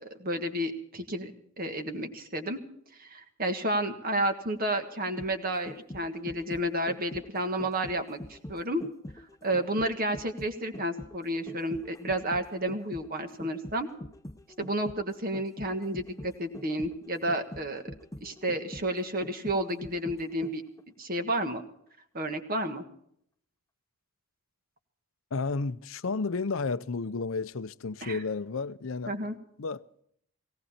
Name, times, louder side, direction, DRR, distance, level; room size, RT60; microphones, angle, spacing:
voice 1, 0.0-2.6 3.0-8.8 9.4-13.9 14.6-17.8 18.2-20.6 21.0-21.6 22.1-22.8 28.0-28.2 29.1-29.4, right 1 dB, 40° right, 1.5 m, -31 dB
sound 1, 4.9-20.8 21.1-21.2, left 1 dB, 15° left, 0.6 m, -44 dB
voice 2, 25.3-29.1 29.6-29.9, left 4 dB, 60° left, 0.6 m, -32 dB
18.0 x 18.0 x 4.3 m
head